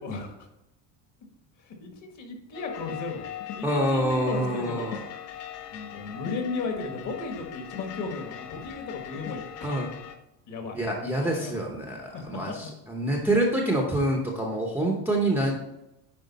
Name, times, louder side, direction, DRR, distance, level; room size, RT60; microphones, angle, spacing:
voice 1, 0.0-0.5 1.6-3.3 3.6-5.1 5.7-9.8 10.5-10.8 11.1-11.6 12.1-12.7 13.0-13.2, left 4 dB, 40° left, 4 dB, 1.5 m, -35 dB
sound 1, 2.5-10.1, left 9 dB, 75° left, 1.1 m, -40 dB
voice 2, 3.6-5.0 9.6-9.9 10.7-15.6, right 1 dB, 5° right, 0 dB, 0.7 m, -26 dB
9.4 x 4.7 x 4.1 m, 0.90 s
cardioid pair, 160°, 44 cm